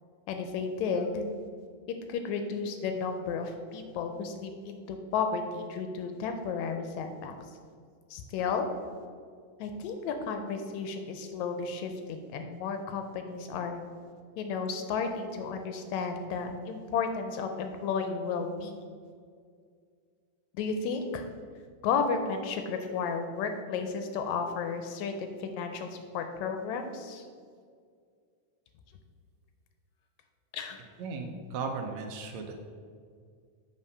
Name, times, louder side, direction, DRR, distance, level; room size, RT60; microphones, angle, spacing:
voice 1, 0.3-1.3 2.1-7.3 8.1-8.7 9.6-13.8 14.4-18.7 20.6-21.2 21.8-27.3 30.5-30.8, left 5 dB, 80° left, 6 dB, 1.7 m, -33 dB
voice 2, 31.0-32.5, right 4 dB, 75° right, 3 dB, 1.7 m, -36 dB
7.1 x 4.1 x 5.4 m, 2.1 s
omnidirectional pair, 3.6 m